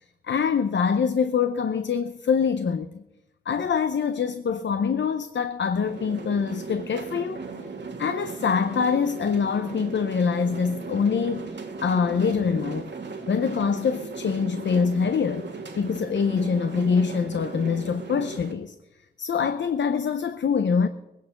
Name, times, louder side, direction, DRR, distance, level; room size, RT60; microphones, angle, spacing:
voice 1, 0.2-3.0 3.5-7.4 8.0-12.9 13.3-15.5 15.8-18.7 19.2-20.9, left 6 dB, 85° left, 0.6 m, -24 dB
sound 1, 5.8-18.5, right 4 dB, 75° right, 1.6 m, -37 dB
20.5 x 10.0 x 5.9 m
cardioid pair, 40°, 18 cm